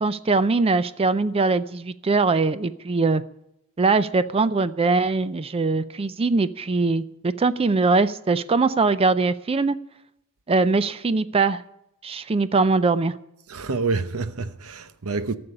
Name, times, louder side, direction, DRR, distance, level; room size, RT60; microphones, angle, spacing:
voice 1, 0.0-3.2 3.8-9.8 10.5-11.6 12.0-13.2, right 3 dB, 25° right, 0.4 m, -21 dB
voice 2, 13.5-15.4, right 4 dB, 70° right, 0.8 m, -27 dB
13.5 x 7.0 x 9.7 m
head